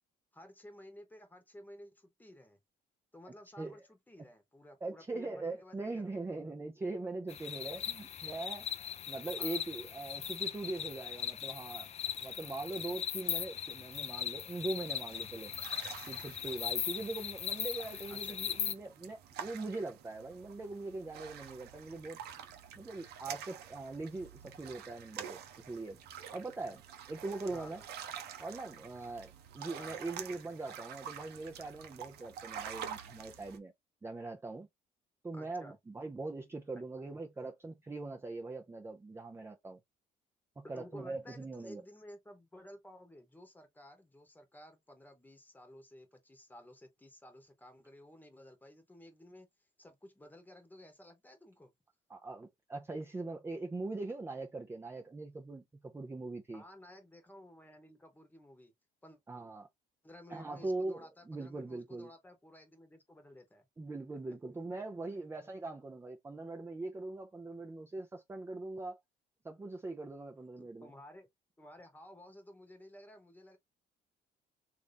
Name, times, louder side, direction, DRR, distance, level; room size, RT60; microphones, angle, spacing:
voice 1, 0.3-2.6 3.1-6.5 9.4-9.6 18.1-18.6 27.5-27.9 29.8-30.0 35.3-35.7 40.6-49.5 49.8-51.7 56.5-58.7 59.0-59.2 60.0-63.7 64.1-64.6 65.1-65.3 70.6-71.3 71.6-73.6, left 1 dB, 10° left, 1.1 m, -54 dB
voice 2, 4.8-8.7 9.1-11.9 12.2-15.5 16.1-22.2 22.8-25.4 25.7-26.0 26.3-26.8 27.1-27.8 28.4-33.7 34.0-34.7 35.2-39.8 40.6-41.8 52.1-56.6 59.3-59.7 60.3-62.1 63.8-69.0 69.4-70.9, right 2 dB, 15° right, 0.5 m, -41 dB
sound 1, 7.3-18.7, left 8 dB, 40° left, 0.5 m, -39 dB
sound 2, 15.1-33.6, right 8 dB, 75° right, 0.8 m, -48 dB
3.2 x 2.6 x 3.4 m
cardioid pair, 110°, 17 cm